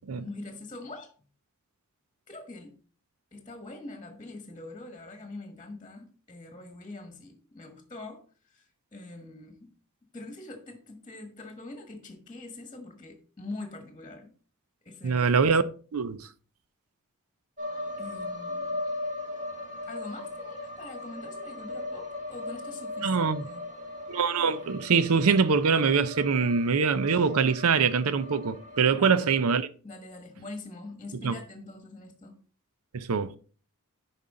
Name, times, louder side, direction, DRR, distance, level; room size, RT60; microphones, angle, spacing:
voice 1, 0.2-1.1 2.3-2.8 3.3-9.7 10.1-14.3 14.8-15.4 18.0-18.8 19.9-23.7 29.0-29.2 29.8-32.4, left 2 dB, 20° left, 1.3 m, -43 dB
voice 2, 15.0-15.6 15.9-16.3 23.0-23.4 24.1-29.7 31.2-31.4 32.9-33.3, right 5 dB, 70° right, 0.6 m, -24 dB
sound 1, 17.6-29.5, left 2 dB, 35° right, 2.0 m, -38 dB
9.6 x 5.5 x 3.7 m
head